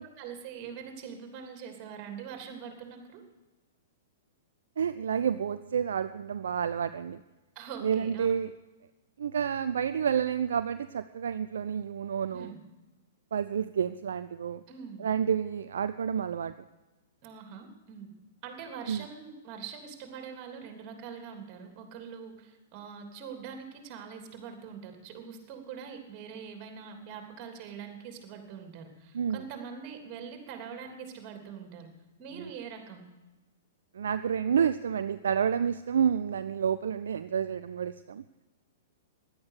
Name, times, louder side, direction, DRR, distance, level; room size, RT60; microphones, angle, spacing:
voice 1, 0.2-3.2 7.5-8.3 12.3-12.6 14.7-15.0 17.2-18.1 18.4-31.9 32.2-33.0, right 7 dB, 35° right, 4 dB, 3.2 m, -43 dB
voice 2, 4.8-7.2 7.8-8.5 9.2-12.5 13.3-14.6 15.0-16.5 18.9-19.0 29.1-29.4 32.4-32.5 33.9-38.2, right 7 dB, 65° right, 11 dB, 0.4 m, -29 dB
16.5 x 11.5 x 6.6 m, 1.1 s
figure-of-eight pair, 105°, 0 cm